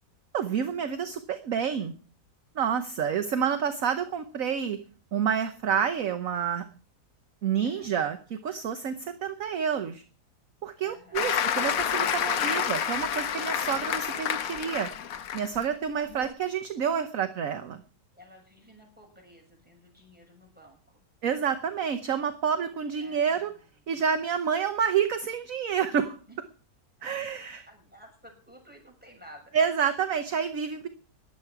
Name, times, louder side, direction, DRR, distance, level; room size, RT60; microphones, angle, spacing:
voice 1, 0.3-1.9 2.5-4.8 5.1-6.6 7.4-10.0 10.6-14.9 15.3-17.8 21.2-23.5 23.9-26.2 27.0-27.6 29.5-30.9, right 7 dB, 55° right, 9 dB, 1.2 m, -28 dB
voice 2, 7.6-7.9 10.8-11.4 18.1-21.0 23.0-23.7 26.3-26.4 27.0-27.1 27.6-29.5, equal, 5° right, 0 dB, 6.5 m, -53 dB
Applause, 11.2-15.6 16.1-16.3, left 8 dB, 60° left, 1.3 m, -29 dB
20.5 x 8.4 x 4.7 m, 0.39 s
omnidirectional pair, 1.8 m